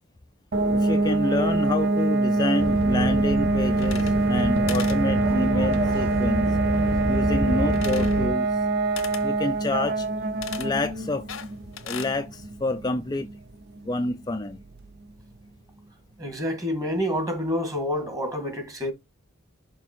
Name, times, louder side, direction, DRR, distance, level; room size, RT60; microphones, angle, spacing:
sound 1, 0.5-15.1, right 2 dB, 55° right, 0.7 m, -25 dB
voice 1, 0.7-6.5 7.1-8.6 9.2-10.1 10.6-11.3 11.8-13.3 13.8-14.6, left 2 dB, 20° left, 0.5 m, -28 dB
sound 2, 2.6-8.3, right 1 dB, 80° right, 1.6 m, -29 dB
sound 3, 3.7-4.4 4.7-5.0 7.7-8.2 9.0-9.3 10.4-10.7 11.3-12.2, left 8 dB, 90° left, 0.9 m, -37 dB
voice 2, 16.2-18.9, equal, 20° right, 1.9 m, -28 dB
6.3 x 3.5 x 4.4 m
head